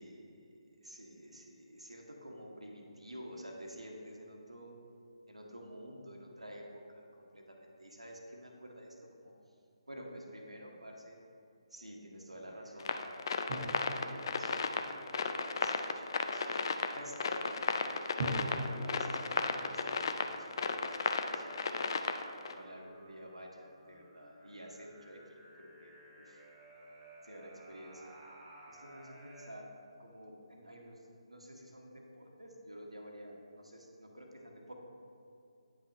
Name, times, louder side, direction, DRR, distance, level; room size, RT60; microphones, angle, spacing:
voice 1, 0.0-4.8 5.3-9.3 9.9-11.2 11.7-17.7 18.3-21.9 22.4-26.4 27.2-28.2 28.7-29.7 30.0-34.7, equal, 85° right, 1 dB, 1.1 m, -50 dB
sound 1, 12.3-29.5, right 1 dB, 10° right, 0.7 m, -59 dB
sound 2, 12.8-22.5, left 5 dB, 45° left, 0.4 m, -34 dB
sound 3, 13.5-15.8 18.2-21.1, right 1 dB, 45° right, 0.9 m, -43 dB
9.4 x 5.8 x 2.6 m, 2.5 s
figure-of-eight pair, 145°, 3 cm